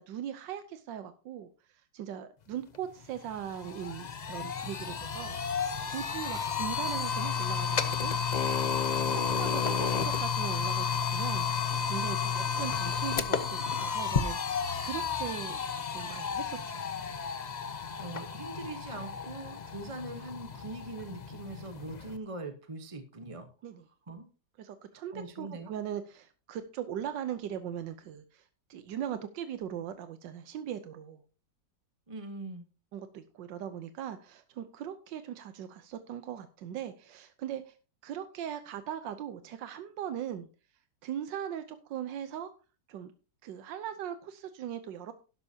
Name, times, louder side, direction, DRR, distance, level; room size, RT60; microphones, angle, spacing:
voice 1, 0.0-8.1 9.1-11.5 11.9-16.9 23.6-23.8 24.6-28.4 28.7-31.2 32.9-37.8 38.0-40.5 41.0-42.5 42.9-43.1 43.4-45.1, right 9 dB, 90° right, 10 dB, 1.5 m, -40 dB
sound 1, 2.7-2.8 3.2-22.2, left 6 dB, 60° left, 0.4 m, -32 dB
voice 2, 18.0-23.5 24.1-24.3 24.9-25.7 32.1-32.7, right 2 dB, 25° right, 7 dB, 0.9 m, -42 dB
12.0 x 11.5 x 2.8 m, 0.34 s
omnidirectional pair, 1.9 m